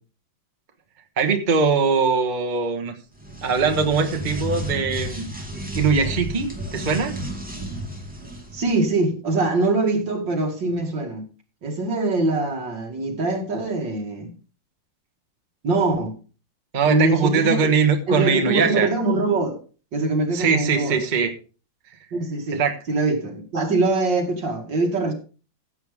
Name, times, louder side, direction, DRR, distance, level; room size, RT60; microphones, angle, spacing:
voice 1, 1.2-2.9 3.4-5.3 5.7-7.2 16.7-18.9 20.3-21.3 22.5-22.7, right 5 dB, 30° right, 1.2 m, -21 dB
sound 1, 3.1-8.8, equal, 5° right, 2.5 m, -32 dB
voice 2, 8.5-11.3 11.6-14.3 15.6-16.1 16.8-17.7 18.1-19.6 19.9-21.0 22.1-22.6 22.9-25.1, right 2 dB, 70° right, 3.0 m, -23 dB
15.0 x 8.0 x 3.5 m
omnidirectional pair, 2.1 m